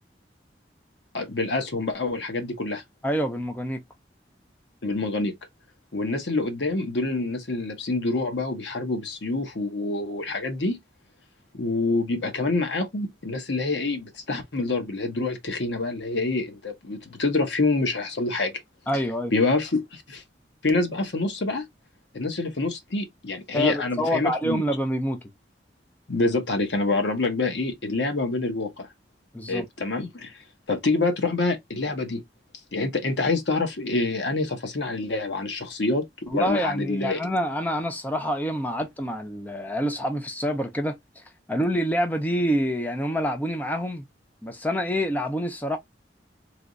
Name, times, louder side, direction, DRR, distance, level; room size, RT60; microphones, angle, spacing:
voice 1, 1.1-2.8 4.8-5.3 5.9-10.8 11.5-18.5 19.3-20.2 20.6-21.7 22.1-24.6 26.1-28.9 29.5-30.3 30.7-32.2 32.7-37.2, left 3 dB, 85° left, 0.9 m, -26 dB
voice 2, 3.0-3.8 18.9-19.3 23.5-25.2 29.3-29.7 36.3-41.0 41.5-44.1 44.4-45.8, equal, 10° left, 0.5 m, -26 dB
3.3 x 2.9 x 2.5 m
head